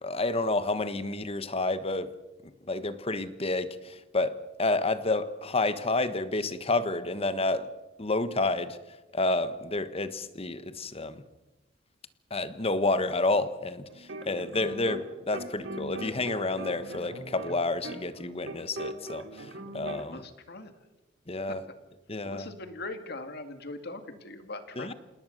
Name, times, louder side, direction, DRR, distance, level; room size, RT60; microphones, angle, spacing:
voice 1, 0.0-2.1 2.7-7.7 8.0-8.8 9.1-11.2 12.3-20.2 21.3-21.6 22.1-22.5 24.8-24.9, left 2 dB, 30° left, 1.3 m, -30 dB
sound 1, 13.9-15.1 15.3-20.1, right 1 dB, 85° right, 2.8 m, -40 dB
voice 2, 19.9-20.7 21.5-21.6 22.2-24.9, left 2 dB, 55° left, 2.2 m, -41 dB
27.5 x 19.0 x 6.6 m
head